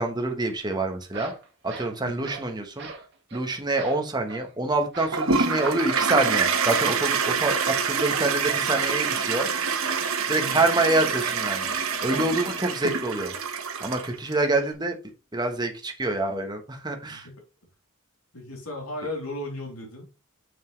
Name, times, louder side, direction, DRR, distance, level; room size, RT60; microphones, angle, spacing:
voice 1, 0.0-1.3 1.6-2.9 3.3-9.5 10.3-11.7 12.0-13.3 13.8-15.0 15.3-17.3, right 2 dB, 20° right, 1.1 m, -26 dB
sound 1, 0.6-0.7 1.0-2.5 2.8-3.0 3.3-3.4 3.8-4.5 4.9-5.2 5.6-5.9 7.4-7.7 8.1-8.4 8.7-9.0, right 3 dB, 50° right, 2.0 m, -39 dB
voice 2, 2.0-2.4 10.4-10.7 17.1-17.3 18.3-20.1, left 1 dB, 85° left, 3.3 m, -36 dB
Toilet flush, 5.1-14.3, right 5 dB, 75° right, 1.3 m, -26 dB
7.1 x 6.4 x 3.2 m
head